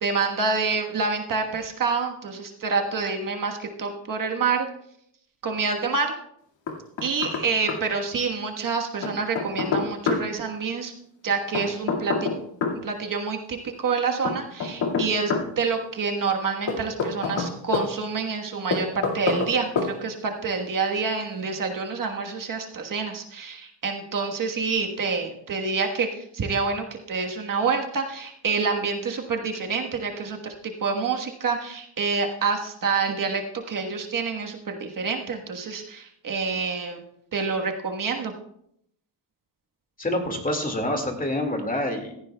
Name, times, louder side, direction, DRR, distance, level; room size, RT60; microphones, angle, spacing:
voice 1, 0.0-4.7 5.4-6.1 7.0-10.9 11.2-12.3 12.8-37.0 37.3-38.3, right 4 dB, 45° right, 2 dB, 1.4 m, -27 dB
Knock, 6.7-7.4 7.7-7.8 9.0-10.2 11.5-12.8 14.2-15.5 16.7-17.9 18.7-19.5 19.8-19.9, left 5 dB, 85° left, 2.2 m, -26 dB
voice 2, 40.0-42.2, left 1 dB, 20° left, 4 dB, 2.1 m, -27 dB
16.0 x 14.5 x 2.3 m, 0.75 s
cardioid pair, 120°, 43 cm